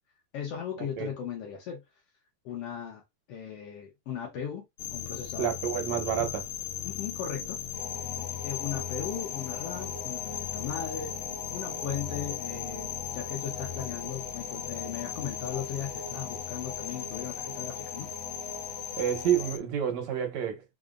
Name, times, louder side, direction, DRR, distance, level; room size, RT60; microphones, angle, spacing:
voice 1, 0.3-1.8 2.5-3.0 3.3-4.7 4.9-5.6 6.2-6.3 6.9-7.6 8.4-11.2 11.5-18.1, left 8 dB, 65° left, 1.7 m, -37 dB
sound 1, 4.8-19.6, left 10 dB, 80° left, 1.4 m, -37 dB
voice 2, 5.4-6.4 19.0-20.6, right 9 dB, 70° right, 2.1 m, -29 dB
sound 2, 7.7-19.6, left 2 dB, 45° left, 1.5 m, -43 dB
5.2 x 2.7 x 2.5 m
omnidirectional pair, 3.3 m